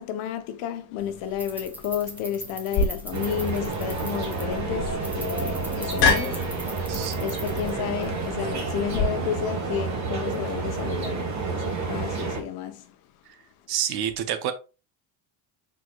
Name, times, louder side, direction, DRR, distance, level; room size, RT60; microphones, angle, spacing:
voice 1, 0.0-13.0, left 9 dB, 80° left, 0.9 m, -32 dB
sound 1, 1.0-8.2, right 1 dB, 5° right, 0.5 m, -41 dB
sound 2, 2.7-9.0, left 4 dB, 55° left, 1.4 m, -29 dB
sound 3, 3.1-12.4, right 4 dB, 35° right, 1.2 m, -30 dB
voice 2, 13.7-14.5, right 10 dB, 50° right, 0.7 m, -28 dB
4.5 x 4.4 x 2.3 m
cardioid pair, 165°, 49 cm